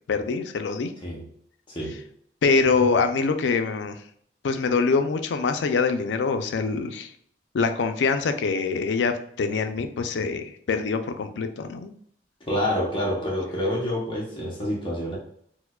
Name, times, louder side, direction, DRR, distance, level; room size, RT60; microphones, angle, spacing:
voice 1, 0.1-0.9 2.4-4.0 4.4-7.1 7.5-11.9, left 4 dB, 80° left, 8 dB, 0.4 m, -24 dB
voice 2, 1.7-2.0 12.5-15.2, left 1 dB, 30° left, -3 dB, 0.6 m, -27 dB
4.5 x 2.1 x 2.2 m, 0.65 s
head